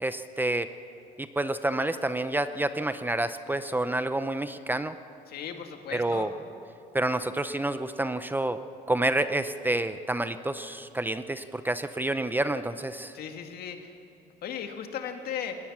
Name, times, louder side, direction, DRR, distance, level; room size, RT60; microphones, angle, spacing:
voice 1, 0.0-0.7 1.2-5.0 5.9-6.3 6.9-8.6 8.9-13.1, right 1 dB, 10° right, 11 dB, 0.6 m, -28 dB
voice 2, 5.3-6.3 13.1-13.9 14.4-15.6, left 8 dB, 65° left, 5 dB, 2.1 m, -36 dB
20.0 x 18.5 x 7.3 m, 2.7 s
cardioid pair, 110°, 17 cm